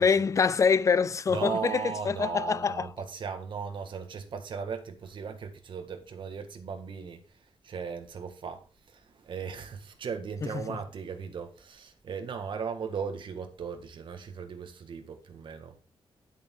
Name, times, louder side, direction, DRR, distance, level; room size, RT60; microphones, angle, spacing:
voice 1, 0.0-2.9 10.5-10.8, left 5 dB, 30° left, 0.5 m, -25 dB
voice 2, 1.3-7.2 7.6-15.8, right 6 dB, 55° right, 1.7 m, -37 dB
10.5 x 8.3 x 3.8 m
wide cardioid pair, 145°, 10 cm